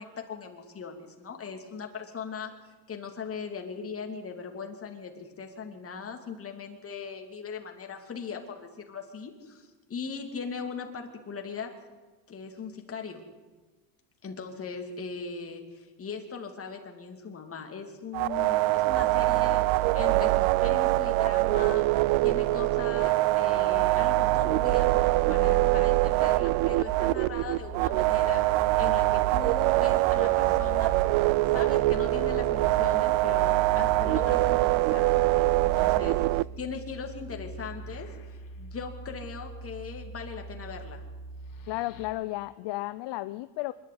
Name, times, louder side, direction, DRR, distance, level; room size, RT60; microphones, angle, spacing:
voice 1, 0.0-11.7 12.3-13.3 14.2-21.9 22.2-28.4 28.8-31.0 31.5-38.1 38.6-41.0, left 5 dB, 30° left, 3 dB, 2.8 m, -39 dB
sound 1, 18.1-36.4, right 19 dB, 70° right, 0.6 m, -24 dB
sound 2, 24.2-42.1, right 2 dB, 80° left, 4.0 m, -42 dB
voice 2, 41.7-43.7, left 18 dB, 60° left, 14 dB, 0.7 m, -33 dB
25.0 x 11.5 x 9.5 m, 1.3 s
cardioid pair, 140°, 49 cm